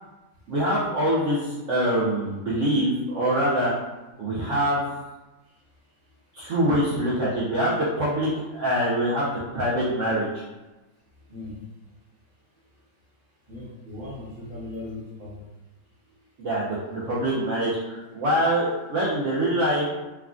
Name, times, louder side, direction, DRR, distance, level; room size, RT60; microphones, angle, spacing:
voice 1, 0.5-3.7 4.2-4.8 6.3-10.4 16.4-19.8, equal, 75° right, -7 dB, 0.6 m, -24 dB
voice 2, 11.2-11.7 12.7-12.8 13.5-15.5 16.0-16.1, left 2 dB, 40° right, -8 dB, 0.9 m, -39 dB
3.5 x 2.2 x 2.4 m, 1.1 s
omnidirectional pair, 1.9 m